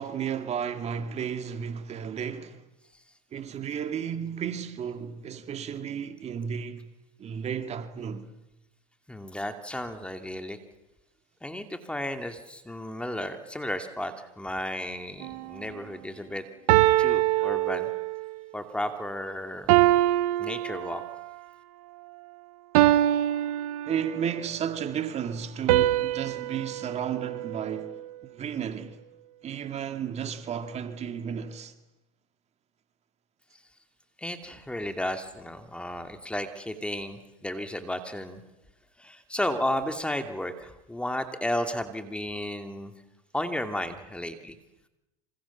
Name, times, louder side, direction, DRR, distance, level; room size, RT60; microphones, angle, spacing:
voice 1, 0.0-2.6 3.3-6.9 7.2-8.3 23.9-29.0 29.4-31.7, right 8 dB, 35° right, 2.2 m, -33 dB
voice 2, 9.1-10.6 11.4-16.4 17.0-17.9 18.5-19.7 20.4-21.0 34.2-38.4 39.0-42.9 43.3-44.6, left 1 dB, 5° left, 2.4 m, -33 dB
sound 1, 15.2-15.5 16.7-18.3 19.7-21.3 22.7-24.4 25.7-28.1, right 15 dB, 75° right, 1.1 m, -24 dB
27.0 x 26.5 x 7.3 m
supercardioid pair, 115°, 20 cm